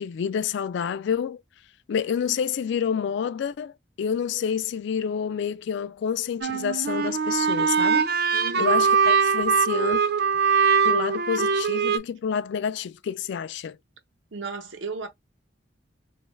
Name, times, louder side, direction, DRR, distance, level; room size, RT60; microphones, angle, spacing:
voice 1, 0.0-1.4 1.9-10.0 10.8-13.8, left 7 dB, 65° left, 0.3 m, -28 dB
sound 1, 6.4-12.0, right 6 dB, 60° right, 0.4 m, -22 dB
voice 2, 8.3-8.8 14.3-15.1, right 4 dB, 80° right, 0.8 m, -35 dB
3.0 x 2.4 x 3.1 m
head